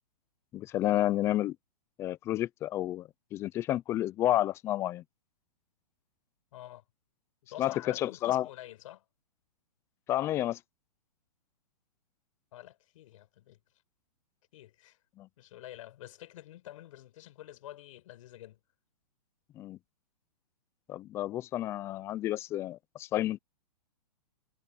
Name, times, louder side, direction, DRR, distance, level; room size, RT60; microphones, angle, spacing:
voice 1, 0.5-1.6 2.0-5.0 7.6-8.5 10.1-10.6 15.2-15.3 19.6-19.8 20.9-23.4, left 13 dB, 10° left, 0.4 m, -30 dB
voice 2, 6.5-6.8 7.5-9.0 12.5-13.6 14.5-15.0 15.4-18.6, left 14 dB, 50° left, 6.6 m, -48 dB
hypercardioid pair, 150°, 21 cm